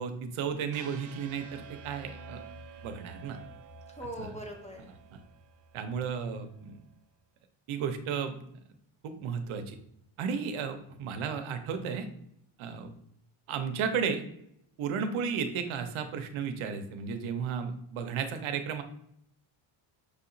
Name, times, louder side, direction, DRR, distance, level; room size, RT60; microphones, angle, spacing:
voice 1, 0.0-2.4 2.8-3.4 4.2-4.4 4.9-5.2 5.7-6.8 7.7-8.4 9.0-9.8 10.2-12.1 12.6-12.9 13.5-14.2 14.8-18.8, right 6 dB, 75° right, 8 dB, 0.7 m, -34 dB
sound 1, 0.7-6.8, right 4 dB, 40° right, 0.5 m, -50 dB
voice 2, 3.9-4.9, equal, 15° left, 1 dB, 0.7 m, -41 dB
6.3 x 2.8 x 2.6 m, 0.73 s
cardioid pair, 140°, 49 cm